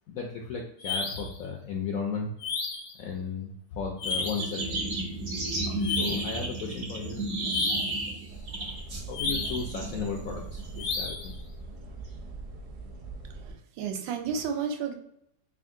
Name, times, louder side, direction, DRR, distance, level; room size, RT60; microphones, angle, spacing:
voice 1, 0.1-2.3 3.0-5.0 6.0-8.8 9.1-11.3, left 5 dB, 75° left, 0 dB, 0.8 m, -36 dB
sound 1, 0.8-1.4 2.4-3.0 4.0-4.5 5.8-6.4 7.5-8.0 9.1-9.7 10.8-11.3, left 5 dB, 90° left, 1.4 m, -32 dB
sound 2, 4.0-10.9, right 2 dB, 50° right, 1.2 m, -32 dB
sound 3, 8.3-13.5, right 3 dB, 70° right, 0.6 m, -42 dB
voice 2, 13.2-14.9, right 6 dB, 85° right, 5 dB, 1.3 m, -32 dB
3.5 x 2.4 x 3.6 m, 0.74 s
omnidirectional pair, 1.9 m